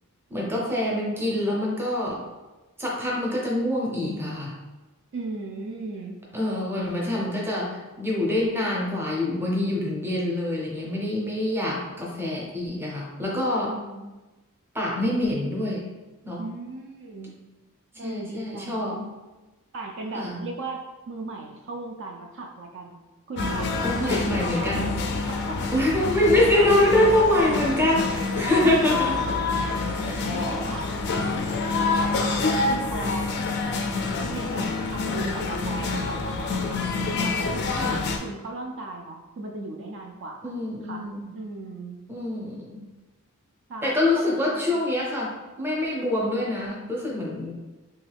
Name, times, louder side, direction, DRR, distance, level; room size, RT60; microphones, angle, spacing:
voice 1, 0.3-2.2 2.8-4.6 6.3-13.7 14.7-15.9 16.2-16.4 17.9-19.1 20.1-20.4 23.8-25.0 25.7-29.3 29.9-30.3 37.8-38.1 40.4-41.3 42.1-42.8 43.8-47.5, left 1 dB, 10° right, -3 dB, 0.6 m, -25 dB
voice 2, 5.1-6.2 13.6-14.2 16.4-17.3 18.0-18.8 19.7-23.0 23.3-24.9 25.3-25.7 30.3-33.3 34.3-36.6 37.2-42.0 43.7-44.8, right 2 dB, 55° right, 1 dB, 0.4 m, -37 dB
sound 1, 23.4-38.2, left 3 dB, 50° left, 0.3 m, -27 dB
3.1 x 2.3 x 3.3 m, 1.1 s
head